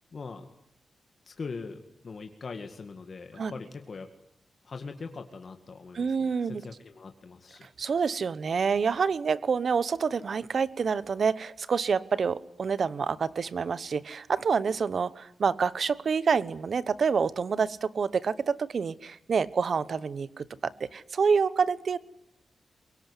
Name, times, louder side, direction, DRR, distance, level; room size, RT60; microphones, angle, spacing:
voice 1, 0.1-0.5 1.2-4.1 4.6-7.7, left 4 dB, 40° left, 5 dB, 2.0 m, -41 dB
voice 2, 5.9-6.6 7.6-22.0, right 5 dB, 50° right, 18 dB, 1.0 m, -27 dB
23.5 x 23.0 x 9.9 m, 0.75 s
wide cardioid pair, 170°, 0 cm